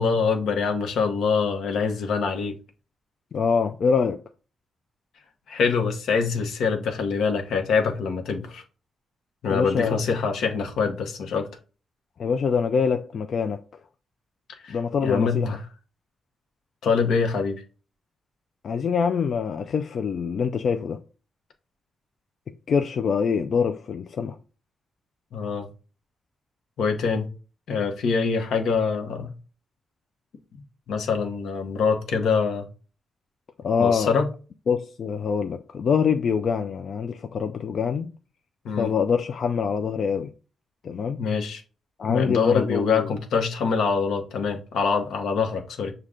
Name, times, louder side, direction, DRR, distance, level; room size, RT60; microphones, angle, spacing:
voice 1, 0.0-2.5 5.5-8.6 9.4-11.5 14.6-14.8 15.0-15.6 16.8-17.6 25.3-25.7 26.8-27.3 27.7-29.3 30.9-32.7 33.8-34.3 38.6-38.9 41.2-41.6 42.1-45.9, left 5 dB, 80° left, 0.8 m, -24 dB
voice 2, 3.3-4.2 9.5-10.0 12.2-13.6 14.7-15.6 18.6-21.0 22.7-24.4 33.6-34.1 34.7-38.1 38.8-40.3 40.8-41.2 42.0-43.1, left 6 dB, 55° left, 0.3 m, -24 dB
6.3 x 2.2 x 3.7 m
cardioid pair, 120°, 0 cm